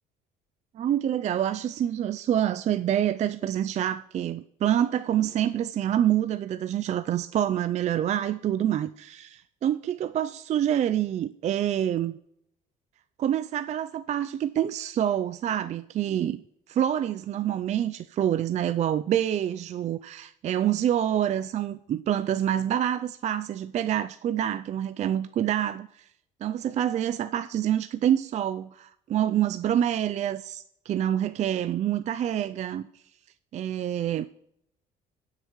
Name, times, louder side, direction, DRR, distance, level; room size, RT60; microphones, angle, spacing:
voice 1, 0.7-12.2 13.2-16.4 16.7-25.9 26.4-32.9 33.5-34.2, right 10 dB, 45° right, 0.4 m, -27 dB
18.0 x 6.6 x 3.1 m
cardioid pair, 110°, 17 cm